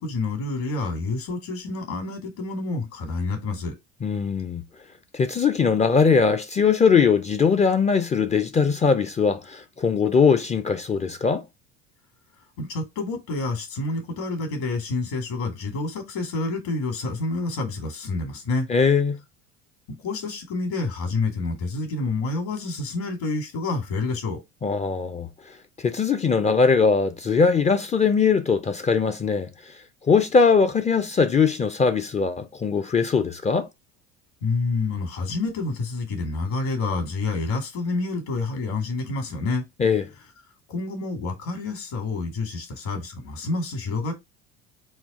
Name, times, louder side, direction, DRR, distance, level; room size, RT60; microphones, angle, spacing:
voice 1, 0.0-3.7 12.6-18.7 19.9-24.4 34.4-39.6 40.7-44.1, left 3 dB, 65° left, 2.0 m, -28 dB
voice 2, 4.0-4.6 5.1-11.4 18.7-19.2 24.6-29.8 30.0-33.7 39.8-40.1, left 5 dB, 20° left, 0.5 m, -21 dB
3.9 x 2.3 x 4.1 m
hypercardioid pair, 75°, 33 cm